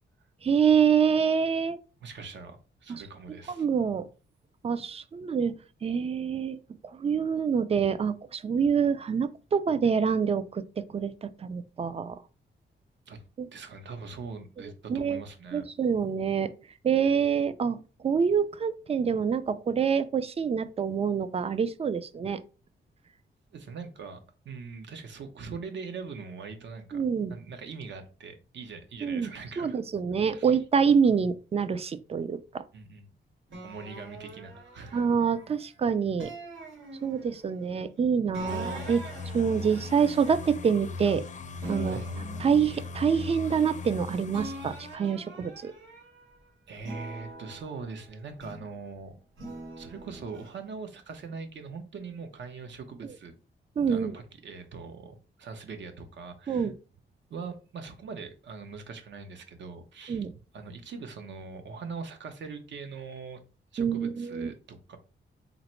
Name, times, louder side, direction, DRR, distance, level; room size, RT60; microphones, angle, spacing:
voice 1, 0.4-1.8 2.9-3.0 3.6-4.1 4.6-6.6 6.8-12.2 13.4-13.5 14.9-15.2 15.5-16.5 16.8-17.8 18.0-22.4 26.9-27.4 29.0-29.3 29.6-32.6 34.9-36.3 37.0-39.0 39.3-41.2 41.7-42.0 42.4-45.7 53.8-54.2 56.5-56.7 60.1-60.3 63.8-64.5, right 6 dB, 30° right, 0.4 m, -26 dB
voice 2, 2.0-3.7 13.1-13.2 13.5-15.7 23.5-27.0 27.3-29.8 30.2-30.6 32.7-33.1 33.6-35.0 41.9-42.1 45.0-45.2 46.7-49.1 49.8-53.3 53.9-56.7 57.3-60.2 60.5-63.4 63.7-65.0, right 4 dB, 70° right, 0.8 m, -42 dB
sound 1, 33.5-35.7 36.2-37.5 38.3-41.3 41.6-44.0 44.3-46.3 46.8-48.8 49.4-50.5, right 1 dB, 85° right, 1.5 m, -44 dB
sound 2, 38.5-44.9, left 3 dB, 40° left, 0.5 m, -39 dB
3.9 x 2.0 x 4.4 m
cardioid pair, 110°, 20 cm